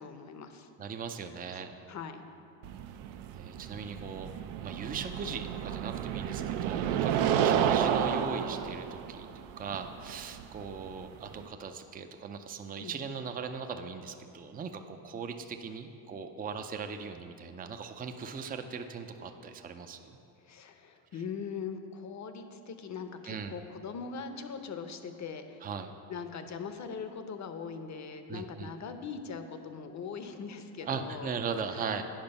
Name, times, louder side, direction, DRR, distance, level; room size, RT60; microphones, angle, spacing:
voice 1, 0.0-0.7 1.5-1.6 1.9-2.2 7.4-7.5 12.8-12.9 20.5-25.6 26.1-31.3 31.7-32.0, left 6 dB, 35° left, 8 dB, 0.7 m, -41 dB
voice 2, 0.8-1.7 3.3-4.3 4.6-9.3 9.6-20.0 23.2-23.6 25.6-25.9 28.3-28.7 30.8-32.0, right 5 dB, 20° right, 7 dB, 0.4 m, -39 dB
sound 1, 2.6-11.5, right 9 dB, 75° right, 0.6 m, -31 dB
8.8 x 5.1 x 5.4 m, 2.6 s
supercardioid pair, 85°, 50 cm